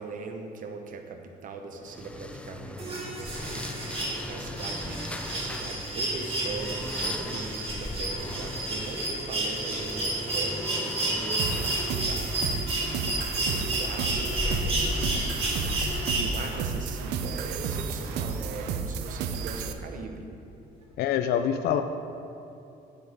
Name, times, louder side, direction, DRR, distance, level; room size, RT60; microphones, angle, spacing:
voice 1, 0.0-3.6 3.9-4.0 4.3-12.5 13.2-20.3, right 4 dB, 50° right, 4 dB, 1.0 m, -40 dB
sound 1, 1.8-19.0, left 1 dB, 5° left, 0.4 m, -38 dB
sound 2, 2.8-16.7 18.1-18.2, right 2 dB, 35° right, 2.2 m, -31 dB
sound 3, 11.4-19.7, right 6 dB, 85° right, 0.6 m, -32 dB
voice 2, 21.0-21.8, left 9 dB, 70° left, 7 dB, 0.4 m, -25 dB
9.1 x 8.2 x 3.5 m, 2.8 s
cardioid pair, 110°, 17 cm